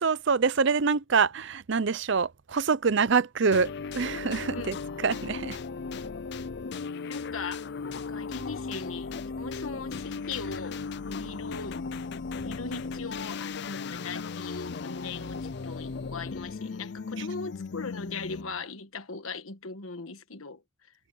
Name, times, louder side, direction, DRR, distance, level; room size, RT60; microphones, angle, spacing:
voice 1, 0.0-4.8 5.0-5.6 17.2-17.3, right 5 dB, 60° right, 0.6 m, -25 dB
sound 1, 3.5-18.6, left 4 dB, 55° left, 0.5 m, -36 dB
voice 2, 7.1-7.7 7.9-11.8 12.3-20.9, left 4 dB, 85° left, 1.4 m, -39 dB
head